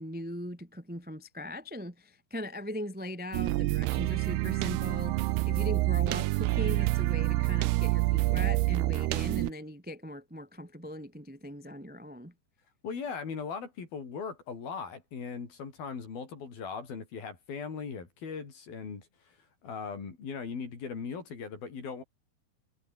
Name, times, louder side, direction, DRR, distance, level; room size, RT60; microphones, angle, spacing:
voice 1, 0.0-12.3, left 1 dB, 5° right, 1.4 m, -39 dB
sound 1, 3.3-9.5, right 19 dB, 80° right, 2.6 m, -27 dB
voice 2, 12.8-19.1 19.6-22.0, left 5 dB, 60° left, 6.6 m, -39 dB
omnidirectional pair, 4.9 m